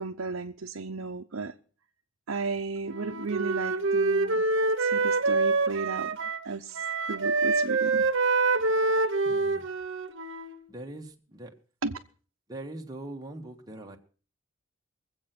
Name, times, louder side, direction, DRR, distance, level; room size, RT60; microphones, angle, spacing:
voice 1, 0.0-1.5 2.3-4.4 4.8-6.1 6.4-6.8 7.1-8.1 11.8-12.0, right 4 dB, 80° right, 0.8 m, -34 dB
Wind instrument woodwind instrument, 2.9-6.5 6.7-10.7, right 3 dB, 65° right, 1.1 m, -26 dB
voice 2, 9.2-9.7 10.7-11.5 12.5-14.0, right 1 dB, 20° right, 1.6 m, -41 dB
21.5 x 8.0 x 6.0 m
head